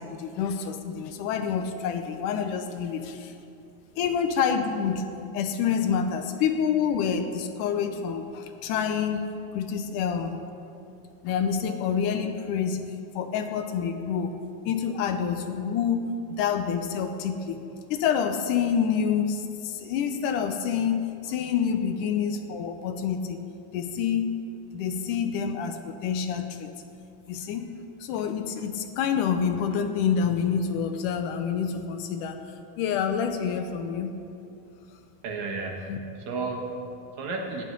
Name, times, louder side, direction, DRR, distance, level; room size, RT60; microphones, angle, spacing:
voice 1, 0.0-3.3 4.0-5.1 5.3-9.3 9.5-10.4 11.2-12.9 13.2-14.3 14.7-17.6 17.9-23.4 23.7-24.3 24.7-26.7 27.3-27.7 28.0-32.4 32.8-34.1 35.9-36.0, left 7 dB, 75° left, 7 dB, 2.0 m, -27 dB
voice 2, 35.2-37.6, right 3 dB, 60° right, 1 dB, 2.4 m, -33 dB
14.5 x 10.5 x 5.4 m, 2.6 s
omnidirectional pair, 4.2 m